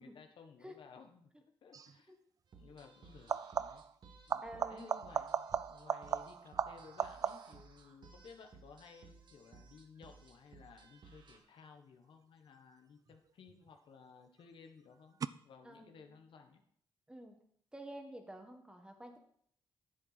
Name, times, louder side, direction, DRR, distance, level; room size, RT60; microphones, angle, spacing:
voice 1, 0.0-1.3 1.6-2.1 2.6-3.8 4.3-15.2 15.4-16.6, left 5 dB, 65° left, 5 dB, 1.3 m, -57 dB
sound 1, 1.7-2.0 3.2-4.0 4.3-7.7 13.1-13.7 15.2-15.3, right 6 dB, 40° right, 0.4 m, -38 dB
sound 2, 2.5-11.4, right 5 dB, 55° right, 1.5 m, -59 dB
voice 2, 4.4-4.9 15.6-16.1 17.1-17.4 17.7-19.2, right 1 dB, 10° right, 4 dB, 1.6 m, -49 dB
10.0 x 7.6 x 4.1 m, 0.66 s
cardioid pair, 85°, 9 cm